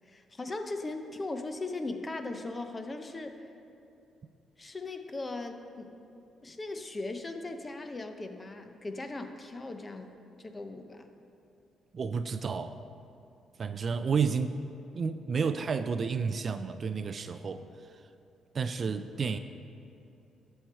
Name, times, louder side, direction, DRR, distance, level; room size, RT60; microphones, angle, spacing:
voice 1, 0.0-3.5 4.6-6.0 6.4-10.1 10.4-11.1, left 2 dB, 25° left, 6 dB, 0.7 m, -38 dB
voice 2, 11.9-12.8 13.6-14.6 14.9-17.9 18.5-19.4, right 5 dB, 45° right, 10 dB, 0.3 m, -31 dB
12.0 x 4.5 x 4.6 m, 2.7 s
cardioid pair, 90°, 0 cm